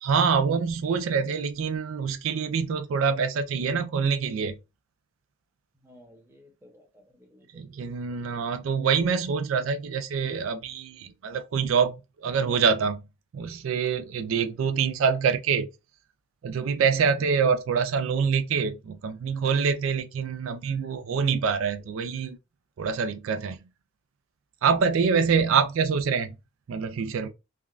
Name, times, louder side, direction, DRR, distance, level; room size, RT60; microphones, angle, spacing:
voice 1, 0.0-4.5 7.5-13.0 13.3-15.7 16.4-22.4 22.8-23.6 24.6-26.4 26.7-27.3, right 6 dB, 80° right, 0.4 m, -25 dB
voice 2, 5.7-8.4 14.3-14.6 21.4-21.5 21.8-22.1, equal, 10° right, 0.8 m, -55 dB
3.3 x 2.2 x 2.4 m
head